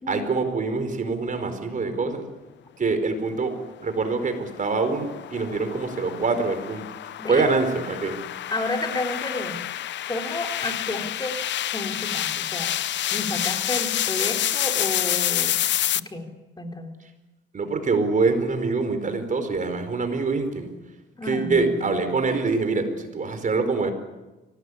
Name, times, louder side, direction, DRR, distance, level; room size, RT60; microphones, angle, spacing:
voice 1, 0.1-2.2 2.8-3.5 3.8-6.8 7.3-8.2 17.5-20.7 21.2-23.9, right 4 dB, 40° right, 8 dB, 4.7 m, -25 dB
sound 1, 3.9-16.0, left 12 dB, 65° left, 0.8 m, -28 dB
voice 2, 8.5-9.6 10.1-11.4 11.7-12.8 13.1-15.6 16.0-16.3 16.6-17.0 21.2-22.0, left 2 dB, 20° left, 3 dB, 3.9 m, -31 dB
24.5 x 18.5 x 9.9 m, 1.1 s
cardioid pair, 90°, 20 cm